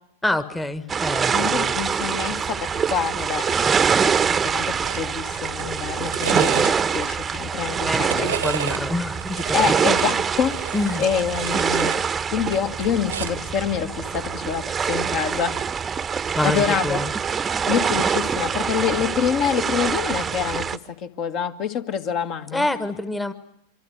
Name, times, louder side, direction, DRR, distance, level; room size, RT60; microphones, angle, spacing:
voice 1, 0.2-1.7 7.9-9.8 10.7-11.0 16.3-17.1 22.5-23.3, left 2 dB, 5° left, 12 dB, 1.4 m, -26 dB
sound 1, 0.9-20.8, right 6 dB, 20° right, 1.1 m, -24 dB
voice 2, 1.3-8.4 9.5-15.6 16.4-17.0 17.7-22.7, left 8 dB, 40° left, 7 dB, 1.8 m, -26 dB
sound 2, 4.8-5.0 5.4-7.1 7.7-8.8 9.2-12.0 12.3-13.5 14.6-14.8, right 9 dB, 65° right, 1.2 m, -32 dB
26.0 x 24.5 x 8.0 m, 0.80 s
figure-of-eight pair, 90°, 0 cm